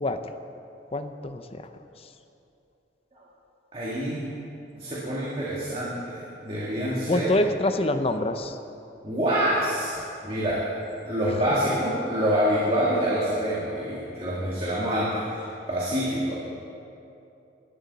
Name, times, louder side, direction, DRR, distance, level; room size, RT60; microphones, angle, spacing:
voice 1, 0.0-0.4 0.9-1.7 7.1-8.6 11.7-11.8, left 2 dB, 35° left, 8 dB, 0.6 m, -26 dB
voice 2, 3.7-4.2 4.7-7.3 9.0-10.0 10.2-10.7 11.1-16.3, equal, 30° right, -6 dB, 1.9 m, -26 dB
18.5 x 12.5 x 4.1 m, 2.7 s
head